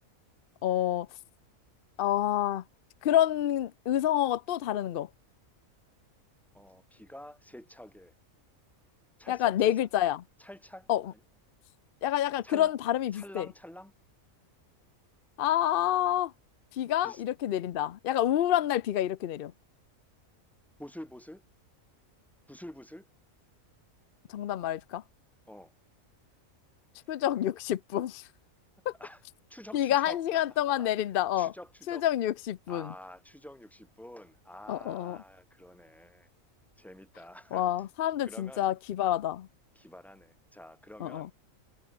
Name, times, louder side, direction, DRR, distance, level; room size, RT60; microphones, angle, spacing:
voice 1, 0.6-1.1 2.0-2.6 3.0-5.1 9.3-10.2 10.9-11.1 12.0-13.5 15.4-16.3 16.7-19.5 24.3-25.0 27.1-28.2 28.9-29.0 29.7-31.5 31.9-32.9 34.7-35.2 37.5-39.5 41.0-41.3, left 12 dB, 60° left, 0.6 m, -28 dB
voice 2, 6.5-8.1 9.2-9.7 10.4-11.2 12.4-12.7 13.1-13.9 17.0-17.2 20.8-21.4 22.5-23.1 25.5-25.7 29.0-29.2 29.5-30.9 31.4-32.0 32.7-36.3 36.8-37.7 38.2-38.7 39.7-41.3, left 1 dB, ahead, 1.5 m, -48 dB
omnidirectional pair, 1.5 m